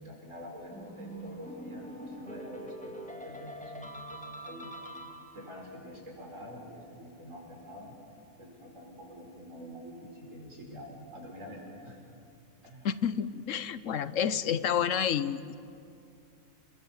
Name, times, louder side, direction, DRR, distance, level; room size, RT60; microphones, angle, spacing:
voice 1, 0.0-4.7 5.3-7.9 8.4-12.2 12.6-12.9, equal, 80° right, 0 dB, 5.5 m, -46 dB
sound 1, 0.7-5.6, right 1 dB, 5° left, 2.1 m, -44 dB
voice 2, 12.8-15.5, left 8 dB, 80° left, 14 dB, 1.2 m, -29 dB
29.0 x 22.0 x 7.3 m, 2.5 s
omnidirectional pair, 1.3 m